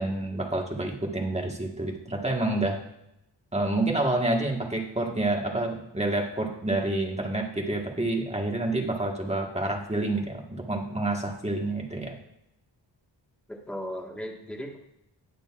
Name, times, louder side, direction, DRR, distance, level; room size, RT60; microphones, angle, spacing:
voice 1, 0.0-2.8 3.5-12.2, right 2 dB, 15° right, 1 dB, 1.6 m, -28 dB
voice 2, 13.5-14.8, equal, 5° left, 0 dB, 1.6 m, -36 dB
19.5 x 6.6 x 2.5 m, 0.83 s
wide cardioid pair, 105°, 43 cm